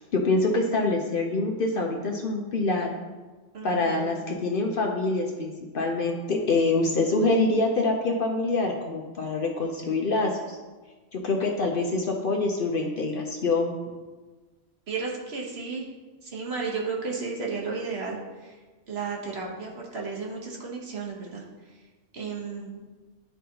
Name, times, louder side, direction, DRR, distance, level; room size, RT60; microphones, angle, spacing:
voice 1, 0.0-2.9 3.6-10.6 11.1-13.8, left 3 dB, 55° left, 1 dB, 0.7 m, -25 dB
voice 2, 3.5-4.2 14.9-15.8 16.3-18.2 18.9-21.4 22.1-22.8, right 4 dB, 60° right, -2 dB, 1.2 m, -33 dB
10.0 x 3.8 x 2.8 m, 1.3 s
omnidirectional pair, 1.3 m